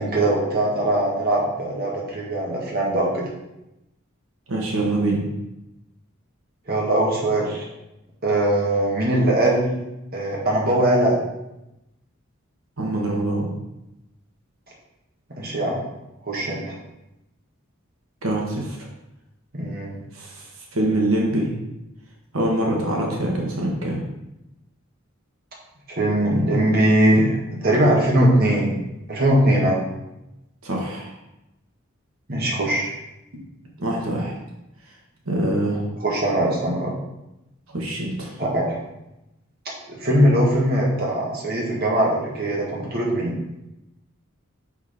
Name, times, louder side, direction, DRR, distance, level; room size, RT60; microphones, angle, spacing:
voice 1, 0.0-3.3 6.7-7.6 8.2-9.8 10.1-11.2 15.3-15.8 16.3-16.8 19.5-19.9 25.9-27.4 27.6-28.8 29.1-29.8 32.3-33.0 36.0-36.9 38.4-38.8 39.9-43.4, right 1 dB, 45° right, -3 dB, 1.6 m, -21 dB
voice 2, 4.5-5.3 12.8-13.5 18.2-18.8 20.1-20.5 20.7-21.5 22.3-24.0 30.6-31.1 33.3-33.4 33.8-34.3 35.3-35.8 37.7-38.3, right 1 dB, 85° right, -1 dB, 1.5 m, -24 dB
5.8 x 5.8 x 4.3 m, 0.91 s
head